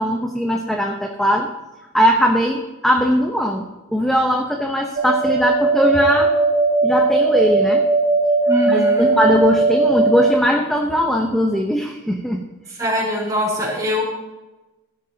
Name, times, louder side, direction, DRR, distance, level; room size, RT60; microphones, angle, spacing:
voice 1, 0.0-1.5 1.9-6.3 6.8-7.8 8.7-12.4, equal, ahead, 1 dB, 0.9 m, -19 dB
sound 1, 5.0-10.3, right 3 dB, 35° right, 0.8 m, -18 dB
voice 2, 8.5-9.1 12.8-14.0, left 1 dB, 15° right, -4 dB, 4.5 m, -22 dB
17.0 x 12.5 x 2.9 m, 1.1 s
head